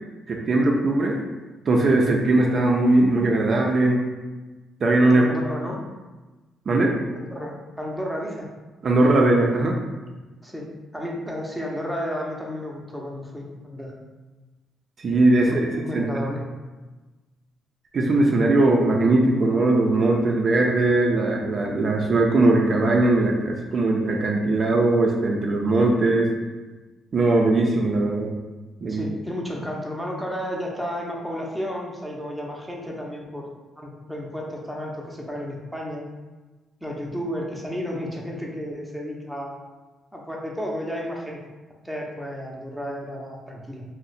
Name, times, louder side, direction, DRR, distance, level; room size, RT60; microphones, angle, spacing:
voice 1, 0.3-1.2 1.7-4.0 4.8-5.3 6.7-6.9 8.8-9.8 15.0-16.0 17.9-26.3 27.1-28.3 28.8-29.0, right 2 dB, 50° right, 0 dB, 0.4 m, -20 dB
voice 2, 5.1-5.8 7.1-8.5 10.4-10.7 10.9-13.9 15.4-16.4 28.9-33.5 33.8-36.0 36.8-39.6 40.1-41.4 41.8-43.8, equal, ahead, -2 dB, 0.6 m, -32 dB
2.7 x 2.1 x 4.0 m, 1.2 s
cardioid pair, 90°, 0 cm